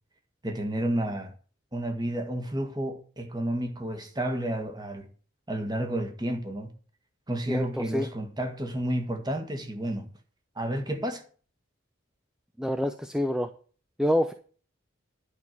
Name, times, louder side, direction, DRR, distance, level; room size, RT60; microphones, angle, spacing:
voice 1, 0.4-1.3 1.7-5.1 5.5-6.7 7.3-10.1 10.6-11.2, right 1 dB, 20° right, 1.7 m, -31 dB
voice 2, 7.5-8.1 12.6-13.5 14.0-14.3, equal, 5° right, 0.6 m, -27 dB
11.0 x 5.6 x 7.7 m
head